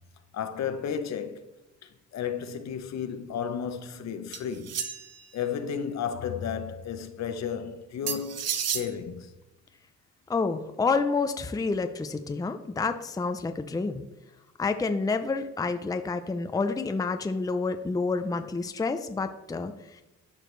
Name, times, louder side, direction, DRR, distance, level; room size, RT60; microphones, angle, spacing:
voice 1, 0.3-1.4 1.8-4.8 5.3-9.3, left 7 dB, 65° left, 0.8 m, -33 dB
sound 1, 4.3-5.2 8.1-8.9, right 7 dB, 55° right, 0.8 m, -31 dB
voice 2, 10.3-14.0 14.6-20.0, left 4 dB, 10° left, 0.5 m, -29 dB
12.0 x 4.9 x 3.2 m
cardioid pair, 90°, 30 cm